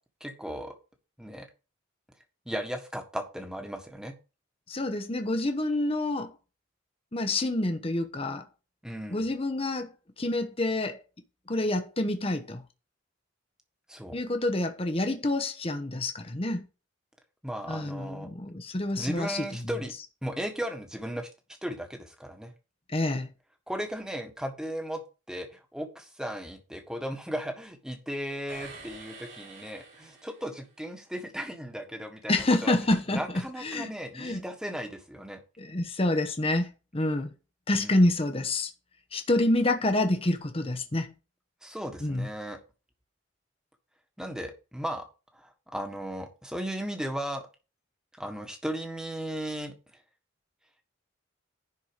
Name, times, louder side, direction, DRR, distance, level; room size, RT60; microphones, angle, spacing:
voice 1, 0.2-0.7 1.2-1.5 2.4-4.1 8.8-9.3 13.9-14.2 17.4-18.3 19.0-19.9 20.2-21.3 21.6-22.5 23.7-25.0 25.3-32.7 33.1-35.4 37.7-38.0 41.6-42.6 44.2-45.0 45.3-47.4 48.2-49.7, equal, 5° right, 1.6 m, -36 dB
voice 2, 4.7-6.3 7.1-8.4 9.1-9.9 10.2-11.0 11.5-12.6 14.1-16.7 17.7-19.7 22.9-23.3 32.3-33.2 33.6-34.4 35.6-37.3 37.7-38.7 39.1-41.1 42.0-42.3, left 2 dB, 30° left, 1.0 m, -28 dB
sound 1, 28.5-30.7, right 4 dB, 70° right, 3.7 m, -48 dB
11.0 x 4.6 x 5.1 m
head